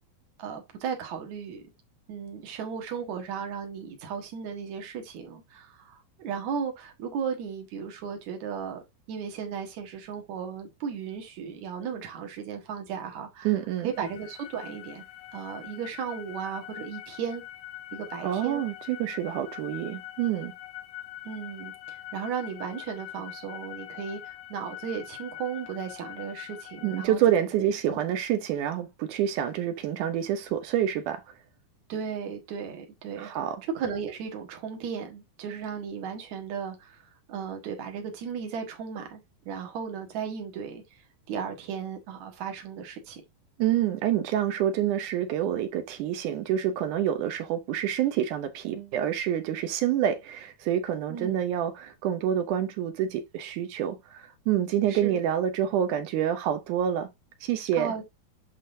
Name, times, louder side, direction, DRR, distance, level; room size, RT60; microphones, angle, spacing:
voice 1, 0.4-1.6 2.1-8.8 9.1-13.5 13.8-15.0 15.3-17.4 17.9-18.6 21.2-27.2 27.9-28.0 31.9-33.3 33.7-37.0 37.3-40.8 41.3-43.2 51.1-51.4 54.9-55.2 57.7-58.0, right 7 dB, 60° right, 2.6 m, -35 dB
voice 2, 13.4-13.9 18.2-20.5 26.8-31.2 33.2-33.6 43.6-57.1 57.4-57.9, right 10 dB, 75° right, 2.0 m, -27 dB
sound 1, 13.9-27.1, left 14 dB, 80° left, 1.7 m, -43 dB
11.5 x 3.8 x 2.7 m
omnidirectional pair, 4.2 m